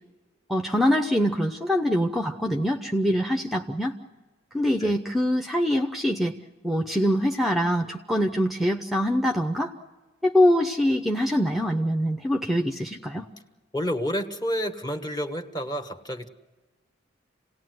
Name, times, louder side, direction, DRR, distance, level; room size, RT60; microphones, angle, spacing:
voice 1, 0.5-4.0 4.5-6.4 6.6-9.7 10.2-13.3, equal, ahead, 4 dB, 0.8 m, -24 dB
voice 2, 13.7-16.3, equal, 20° left, 7 dB, 1.4 m, -29 dB
28.5 x 18.0 x 7.8 m, 1.2 s
head